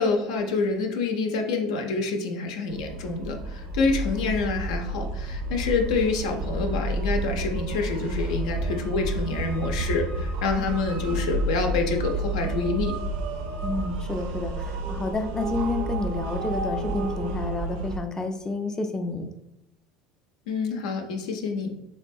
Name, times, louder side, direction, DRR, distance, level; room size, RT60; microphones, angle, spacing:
voice 1, 0.0-12.9 20.5-21.7, left 4 dB, 80° left, 4 dB, 0.5 m, -27 dB
sound 1, 2.7-18.0, right 2 dB, 65° right, 0.5 m, -30 dB
voice 2, 13.6-19.3, left 3 dB, 20° left, 5 dB, 0.4 m, -30 dB
3.7 x 2.2 x 2.6 m, 0.84 s
hypercardioid pair, 85°, 3 cm